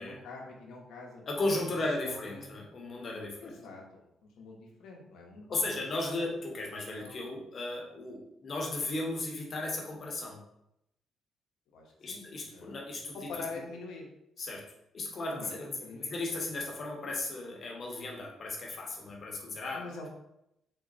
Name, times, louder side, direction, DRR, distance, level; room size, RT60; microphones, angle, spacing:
voice 1, 0.0-1.5 2.0-2.6 3.4-6.2 6.8-7.2 11.7-12.8 13.1-14.1 15.3-16.1 19.7-20.1, left 3 dB, 80° left, 0 dB, 0.9 m, -45 dB
voice 2, 1.3-3.5 5.5-10.4 12.0-13.2 14.4-14.7 14.9-15.7 16.1-19.8, left 2 dB, 45° left, -1 dB, 1.0 m, -35 dB
3.7 x 2.1 x 3.9 m, 0.83 s
cardioid pair, 90°, 0 cm